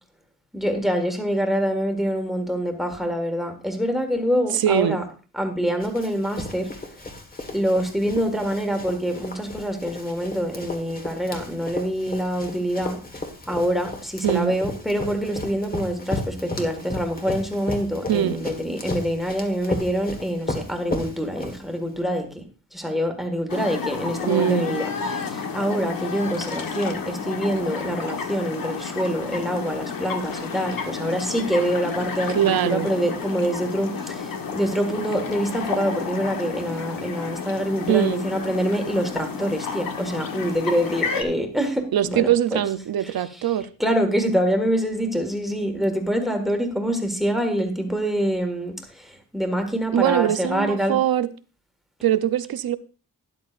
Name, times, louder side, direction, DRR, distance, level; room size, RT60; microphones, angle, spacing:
voice 1, 0.5-5.0 5.3-6.7 7.5-13.0 13.5-22.4 22.7-42.6 43.0-43.1 43.8-51.0, equal, ahead, 1.7 m, -25 dB
voice 2, 4.5-5.0 14.2-14.5 18.1-18.4 24.3-24.8 32.3-32.9 37.9-38.3 41.9-43.7 49.9-51.3 52.0-52.8, right 11 dB, 70° right, 0.7 m, -22 dB
Run, 5.8-22.0, left 2 dB, 25° left, 1.5 m, -34 dB
sound 1, 23.5-41.2, left 5 dB, 60° left, 1.4 m, -31 dB
12.5 x 10.5 x 2.5 m
wide cardioid pair, 135°, 38 cm